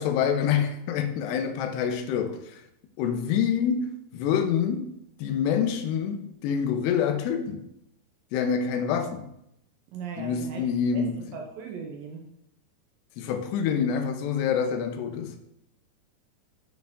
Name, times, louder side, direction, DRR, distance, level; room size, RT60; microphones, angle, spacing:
voice 1, 0.0-2.4 3.0-3.9 4.1-4.9 5.2-7.7 8.3-9.3 10.2-11.4 13.2-15.4, left 7 dB, 85° left, 2.8 m, -26 dB
voice 2, 9.9-10.7 10.9-12.3, right 6 dB, 75° right, 2.1 m, -38 dB
9.5 x 4.6 x 3.6 m
omnidirectional pair, 4.7 m